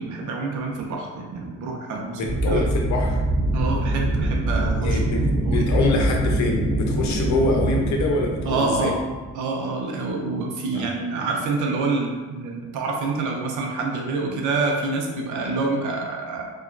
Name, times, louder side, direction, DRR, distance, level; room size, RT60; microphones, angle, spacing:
voice 1, 0.0-2.6 3.5-5.6 8.5-9.0 9.3-16.5, right 3 dB, 80° right, 1 dB, 0.6 m, -27 dB
voice 2, 2.1-3.2 4.8-5.3 5.5-8.9 10.7-10.9, left 3 dB, 70° left, 1 dB, 0.6 m, -25 dB
sound 1, 2.2-9.3, right 1 dB, 10° right, 0.7 m, -24 dB
2.8 x 2.3 x 2.5 m, 1.3 s
cardioid pair, 90°, 30 cm